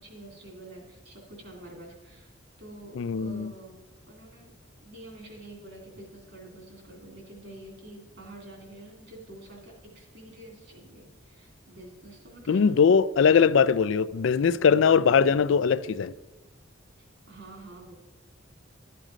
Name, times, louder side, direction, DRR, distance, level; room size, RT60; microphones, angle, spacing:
voice 1, 0.0-2.3 2.6-3.8 4.1-4.5 4.8-12.8 17.3-17.9, right 1 dB, 65° right, 3.0 m, -47 dB
voice 2, 3.0-3.5 12.5-16.1, left 6 dB, 65° left, 0.4 m, -21 dB
12.0 x 7.7 x 5.0 m
head